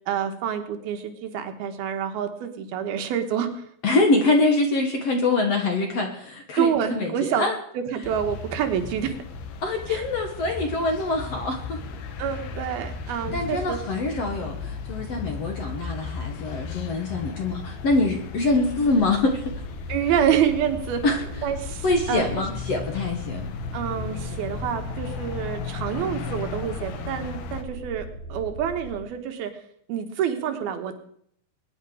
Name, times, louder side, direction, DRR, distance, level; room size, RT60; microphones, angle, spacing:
voice 1, 0.1-3.6 6.6-7.4 7.7-9.2 9.9-10.0 12.2-13.8 19.9-21.0 21.4-22.4 23.7-29.5 29.9-31.0, right 9 dB, 75° right, 6 dB, 3.1 m, -27 dB
voice 2, 3.8-7.6 9.6-11.8 13.3-19.6 21.0-21.2 21.8-23.5, left 2 dB, 55° left, 3 dB, 2.0 m, -24 dB
sound 1, 8.0-27.6, left 5 dB, 75° left, 3.3 m, -36 dB
sound 2, 18.8-29.0, equal, 20° left, 6.6 m, -39 dB
22.0 x 10.5 x 4.9 m, 0.67 s
omnidirectional pair, 4.5 m